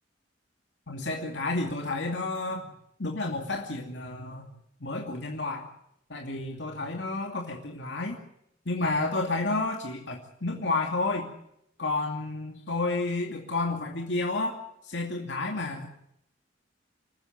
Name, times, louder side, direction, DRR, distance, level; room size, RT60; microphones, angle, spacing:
voice 1, 0.9-2.7 3.0-4.5 4.8-5.7 6.1-8.2 8.7-11.3 11.8-14.6 14.8-15.9, left 2 dB, 65° left, 1 dB, 2.5 m, -30 dB
27.0 x 14.5 x 7.9 m, 0.75 s
head